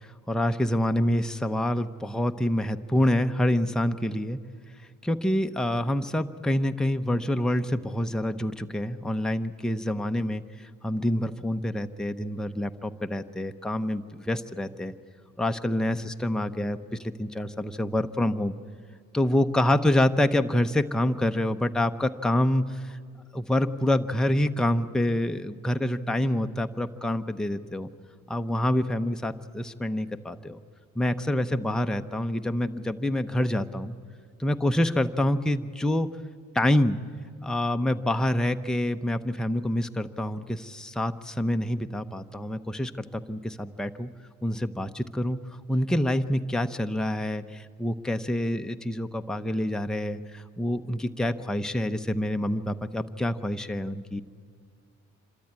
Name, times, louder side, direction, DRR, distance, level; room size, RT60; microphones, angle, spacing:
voice 1, 0.3-4.4 5.0-10.4 10.8-14.9 15.4-16.8 17.2-18.5 19.1-23.0 23.3-27.9 28.3-30.6 31.0-34.0 34.4-36.1 36.5-37.0 37.4-44.1 44.4-45.4 45.7-54.2, left 1 dB, ahead, 6 dB, 0.7 m, -27 dB
26.0 x 13.5 x 9.6 m, 2.1 s
cardioid pair, 90°, 30 cm